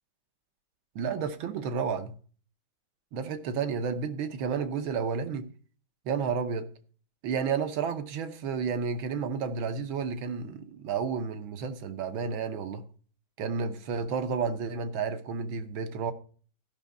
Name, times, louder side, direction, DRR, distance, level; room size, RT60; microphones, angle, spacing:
voice 1, 0.9-2.1 3.1-5.5 6.0-6.7 7.2-12.9 13.4-16.1, right 6 dB, 90° right, 1.8 m, -31 dB
13.0 x 6.1 x 5.2 m
omnidirectional pair, 2.1 m